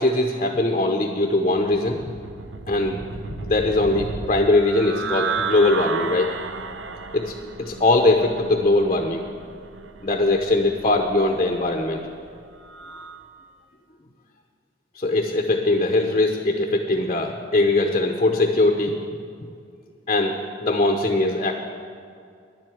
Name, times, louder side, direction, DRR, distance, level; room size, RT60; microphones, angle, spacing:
voice 1, 0.0-2.0 2.7-3.0 3.4-6.3 7.1-9.2 10.0-12.0 14.9-19.0 20.1-21.5, left 2 dB, 35° left, 3 dB, 0.7 m, -21 dB
sound 1, 1.4-13.3, right 4 dB, 80° right, 0.7 m, -34 dB
10.5 x 7.7 x 9.2 m, 2.3 s
head